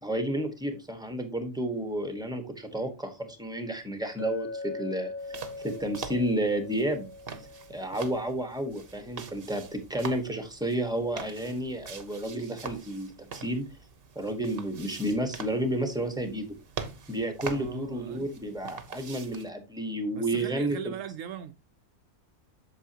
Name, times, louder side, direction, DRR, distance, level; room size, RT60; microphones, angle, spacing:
voice 1, 0.0-7.1 7.7-13.6 14.1-16.6 17.1-20.9, right 1 dB, 5° right, 1.2 m, -31 dB
Chink clink, 4.2-8.3, left 3 dB, 70° left, 4.0 m, -41 dB
sound 1, 5.2-19.5, right 6 dB, 45° right, 1.1 m, -44 dB
voice 2, 17.4-18.3 20.1-21.5, right 9 dB, 70° right, 0.9 m, -40 dB
8.2 x 6.8 x 2.8 m
omnidirectional pair, 1.4 m